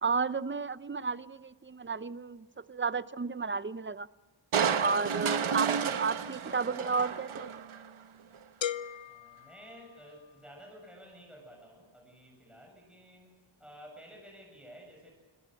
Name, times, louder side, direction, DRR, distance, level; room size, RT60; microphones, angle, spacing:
voice 1, 0.0-4.1 4.8-7.5, right 4 dB, 25° right, 16 dB, 0.6 m, -32 dB
Crushing, 4.5-7.9 8.3-8.4, right 7 dB, 80° right, 1.1 m, -31 dB
sound 1, 8.6-10.5, left 9 dB, 65° left, 0.8 m, -39 dB
voice 2, 9.1-15.1, equal, ahead, 0 dB, 7.4 m, -52 dB
25.0 x 17.0 x 7.8 m, 1.3 s
wide cardioid pair, 60°, 48 cm